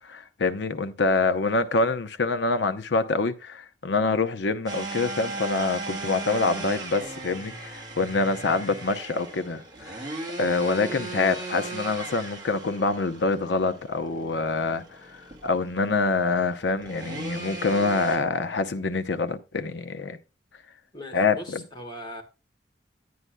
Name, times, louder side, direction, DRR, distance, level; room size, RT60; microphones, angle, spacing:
voice 1, 0.1-10.0 10.4-14.8 15.1-20.2 21.1-21.6, left 3 dB, 85° left, 0.7 m, -26 dB
sound 1, 4.7-18.2, right 2 dB, 25° right, 1.8 m, -37 dB
voice 2, 20.9-22.2, left 1 dB, 25° left, 1.6 m, -39 dB
10.0 x 9.6 x 2.2 m
head